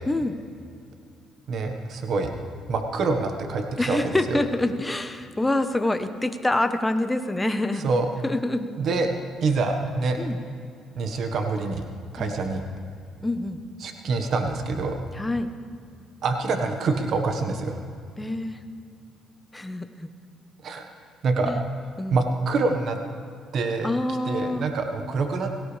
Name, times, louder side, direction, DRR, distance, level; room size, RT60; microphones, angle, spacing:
voice 1, 0.1-0.4 3.8-7.9 8.2-8.7 10.2-10.4 12.2-12.3 13.2-13.6 15.1-15.5 18.2-18.6 19.5-20.1 21.4-21.6 22.0-22.2 23.8-24.6, left 1 dB, 10° left, 8 dB, 1.1 m, -26 dB
voice 2, 1.5-2.3 2.7-4.4 7.8-8.1 8.8-9.1 9.4-10.2 10.9-11.8 12.1-12.6 13.8-15.0 16.2-17.8 20.6-20.8 21.2-21.8 22.1-23.0 23.5-23.9 24.2-25.6, right 3 dB, 60° right, 5 dB, 1.4 m, -26 dB
17.5 x 17.0 x 3.4 m, 2.4 s
cardioid pair, 85°, 0 cm